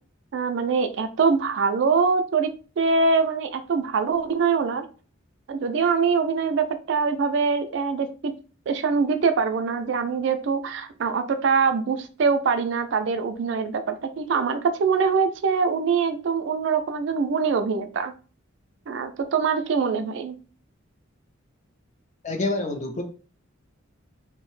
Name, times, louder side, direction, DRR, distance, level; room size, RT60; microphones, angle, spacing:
voice 1, 0.3-4.8 5.5-8.3 8.7-18.1 18.9-20.4, right 5 dB, 55° right, 0.3 m, -23 dB
voice 2, 22.2-23.0, left 2 dB, 35° left, 0.4 m, -27 dB
2.6 x 2.0 x 3.0 m
head